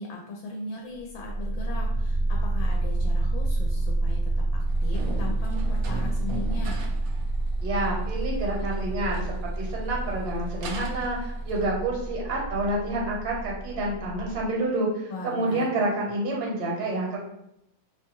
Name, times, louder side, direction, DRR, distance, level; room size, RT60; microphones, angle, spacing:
voice 1, 0.0-6.8 15.1-15.7, left 2 dB, 85° left, -1 dB, 1.4 m, -38 dB
sound 1, 1.0-14.5, right 2 dB, 55° left, 1.1 m, -28 dB
sound 2, 4.7-11.6, right 2 dB, 85° right, 0.7 m, -41 dB
voice 2, 7.6-17.2, right 2 dB, 65° right, -2 dB, 1.3 m, -28 dB
3.2 x 2.2 x 2.9 m, 0.81 s
omnidirectional pair, 2.1 m